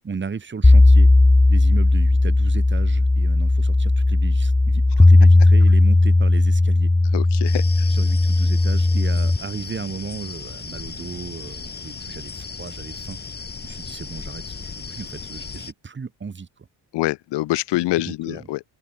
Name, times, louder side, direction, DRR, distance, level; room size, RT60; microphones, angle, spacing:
voice 1, 0.0-1.1 1.5-6.9 7.9-13.2 13.6-16.7 18.0-18.4, right 5 dB, 25° right, 3.5 m, -35 dB
sound 1, 0.6-9.4, left 2 dB, 5° left, 0.5 m, -15 dB
voice 2, 7.1-7.9 16.9-18.6, left 18 dB, 85° left, 0.8 m, -25 dB
sound 2, 7.4-15.7, left 5 dB, 25° left, 1.8 m, -36 dB
open air
cardioid pair, 135°, 41 cm